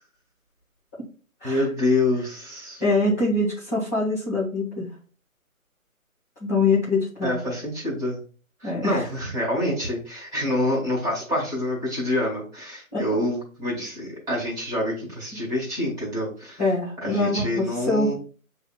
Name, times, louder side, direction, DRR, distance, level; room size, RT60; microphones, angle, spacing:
voice 1, 1.4-2.8 7.2-8.2 8.6-16.6 17.0-18.1, left 1 dB, 10° right, -5 dB, 1.9 m, -27 dB
voice 2, 2.8-4.9 6.4-7.4 8.6-9.1 12.9-13.0 16.6-18.1, left 2 dB, 10° left, -12 dB, 0.9 m, -24 dB
8.3 x 2.8 x 2.2 m, 0.40 s
figure-of-eight pair, 150°, 42 cm